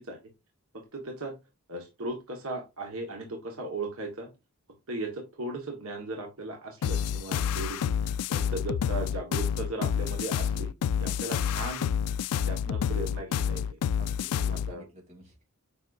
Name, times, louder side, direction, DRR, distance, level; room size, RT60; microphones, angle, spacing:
voice 1, 0.7-1.4 1.7-4.3 4.9-10.7 11.0-11.9 12.3-13.8 14.5-14.8, right 2 dB, 65° right, 2 dB, 1.4 m, -37 dB
sound 1, 6.8-14.7, left 8 dB, 85° left, 0.3 m, -29 dB
voice 2, 14.0-15.4, right 1 dB, 30° right, -1 dB, 2.8 m, -51 dB
7.3 x 5.4 x 2.5 m, 0.25 s
head